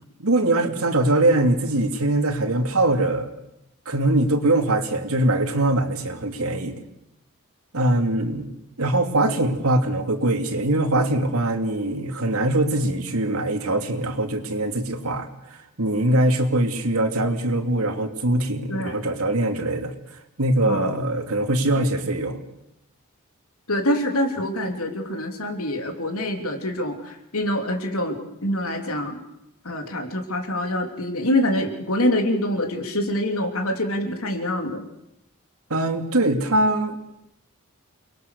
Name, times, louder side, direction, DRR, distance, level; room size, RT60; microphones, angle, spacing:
voice 1, 0.2-3.3 3.9-6.7 7.7-8.5 8.8-19.9 20.4-22.4 35.7-37.0, right 1 dB, 80° right, 5 dB, 2.9 m, -22 dB
voice 2, 20.6-20.9 23.7-29.2 29.6-34.8, left 1 dB, 75° left, 4 dB, 3.5 m, -25 dB
29.5 x 21.5 x 6.8 m, 0.85 s
head